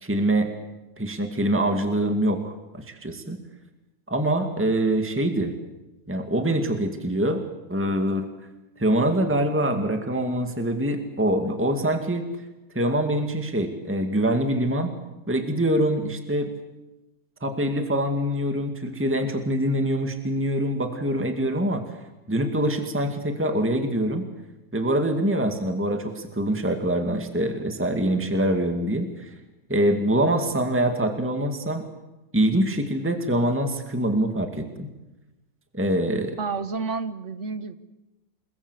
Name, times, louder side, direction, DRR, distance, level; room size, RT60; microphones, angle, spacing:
voice 1, 0.0-0.5 1.0-3.4 4.1-5.5 6.1-7.4 7.7-8.3 8.8-12.3 12.7-14.9 15.3-16.5 17.4-21.8 22.3-24.3 24.7-29.3 29.7-31.8 32.3-34.9 35.7-36.4, right 1 dB, 5° right, 5 dB, 2.2 m, -24 dB
voice 2, 36.4-37.8, right 4 dB, 50° right, 11 dB, 1.5 m, -30 dB
29.5 x 20.0 x 8.3 m, 1.0 s
omnidirectional pair, 1.8 m